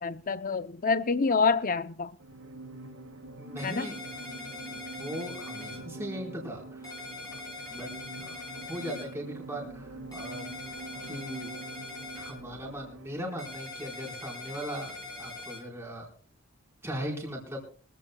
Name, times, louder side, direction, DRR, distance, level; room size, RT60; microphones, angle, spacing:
voice 1, 0.0-2.1 3.6-3.9, left 4 dB, 40° left, 0.6 m, -27 dB
sound 1, 2.2-15.5, right 2 dB, 90° right, 5.5 m, -45 dB
voice 2, 3.4-4.2 4.7-7.0 7.7-7.9 8.2-8.3 8.6-10.5 11.1-11.5 12.1-14.9 15.2-16.1 16.8-17.6, equal, 10° right, 4.5 m, -39 dB
sound 2, 3.6-5.8 6.8-9.0 10.1-12.3 13.4-15.6, left 3 dB, 20° left, 5.4 m, -42 dB
24.5 x 15.0 x 2.3 m
head